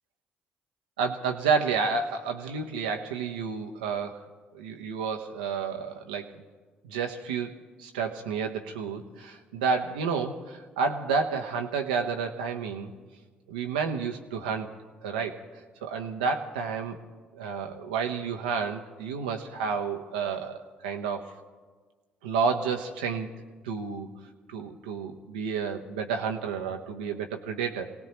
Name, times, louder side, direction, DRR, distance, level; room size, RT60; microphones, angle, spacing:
voice 1, 1.0-6.3 6.8-7.5 7.8-12.9 13.5-14.7 15.0-15.4 15.8-17.0 17.3-21.4 22.2-23.4 23.6-24.1 24.5-27.9, right 5 dB, 85° right, 3 dB, 0.9 m, -30 dB
26.0 x 18.0 x 3.0 m, 1.5 s
hypercardioid pair, 50°, 4 cm